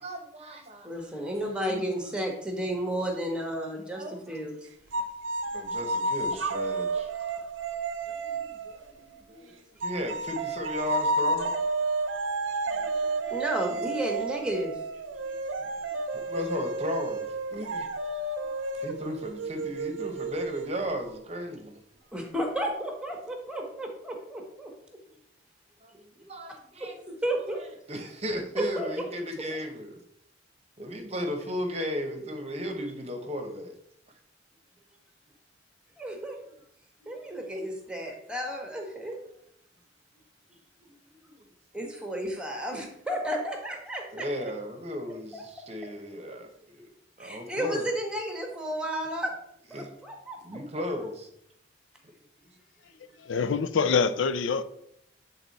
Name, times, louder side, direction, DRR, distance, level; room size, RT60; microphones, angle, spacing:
voice 1, 0.0-0.9 1.6-1.9 3.9-4.2 5.5-7.1 8.1-11.5 12.7-12.9 13.7-13.8 15.6-15.7 16.3-17.9 18.8-21.7 25.8-27.0 27.9-29.9 30.8-33.7 40.8-41.0 41.2-41.4 44.1-46.9 47.2-47.9 49.7-49.9 50.4-51.3, equal, 35° right, 0.9 m, -35 dB
voice 2, 0.8-4.7 9.3-9.5 12.5-14.7 15.3-15.4 22.1-24.7 26.8-27.6 28.6-29.0 36.0-36.4 37.0-39.2 41.7-44.3 45.3-45.4 47.2-49.3 49.7-50.4 51.0-51.1, right 1 dB, 5° right, 1.2 m, -33 dB
sound 1, 4.9-9.3 9.8-21.2, right 2 dB, 90° right, 0.6 m, -31 dB
voice 3, 53.2-54.6, left 5 dB, 90° left, 0.5 m, -25 dB
8.0 x 4.0 x 4.1 m
head